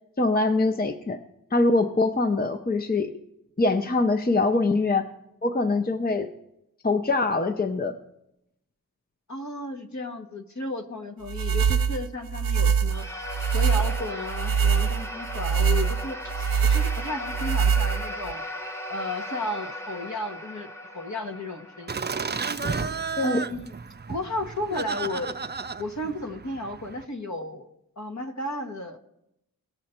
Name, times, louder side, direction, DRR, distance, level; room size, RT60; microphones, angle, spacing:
voice 1, 0.2-1.2 1.5-3.1 3.6-5.1 5.4-6.3 6.8-8.0 23.2-23.4, left 3 dB, 25° left, 6 dB, 0.6 m, -23 dB
voice 2, 9.3-13.0 13.5-18.4 18.9-20.7 20.9-22.8 23.2-23.7 24.1-25.3 25.8-27.7 28.0-29.0, left 1 dB, 55° left, 5 dB, 1.2 m, -33 dB
sound 1, 11.3-18.3, right 6 dB, 80° right, 0.5 m, -24 dB
sound 2, 12.8-23.4, left 1 dB, 10° left, 1.0 m, -37 dB
Laughter, 21.9-27.0, right 5 dB, 30° right, 0.4 m, -33 dB
18.5 x 6.6 x 4.4 m, 0.83 s
wide cardioid pair, 45°, 34 cm